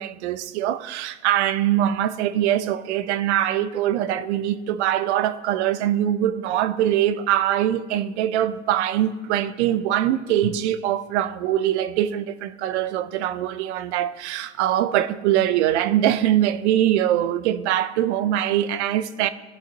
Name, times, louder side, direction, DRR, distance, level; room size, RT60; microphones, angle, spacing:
voice 1, 0.0-19.3, right 11 dB, 65° right, 0.6 m, -23 dB
14.5 x 5.6 x 2.9 m
supercardioid pair, 130°, 36 cm